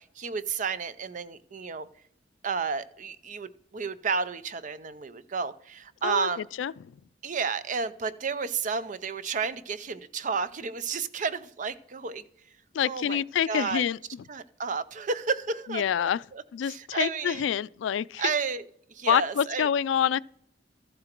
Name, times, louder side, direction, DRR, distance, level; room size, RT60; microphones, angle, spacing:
voice 1, 0.0-1.9 2.4-6.5 7.2-12.2 12.8-13.2 13.5-13.8 14.3-17.5 18.2-18.6 18.9-19.7, right 5 dB, 45° right, 0.6 m, -32 dB
voice 2, 12.7-14.0 15.7-16.2 16.5-18.2 19.1-20.2, left 8 dB, 85° left, 0.3 m, -26 dB
13.5 x 7.6 x 4.4 m
head